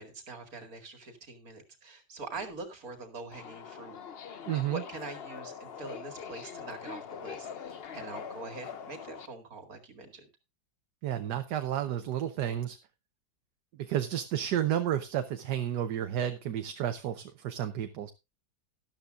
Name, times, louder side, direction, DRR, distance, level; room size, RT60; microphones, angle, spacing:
voice 1, 0.0-4.0 4.3-10.3, right 3 dB, 50° right, 5 dB, 2.7 m, -44 dB
Subway metro underground, 3.3-9.3, left 7 dB, 65° left, 0.6 m, -43 dB
voice 2, 4.5-4.8 11.0-12.8 13.8-18.1, right 10 dB, 65° right, 8 dB, 1.3 m, -31 dB
13.0 x 12.0 x 2.5 m, 0.24 s
omnidirectional pair, 2.0 m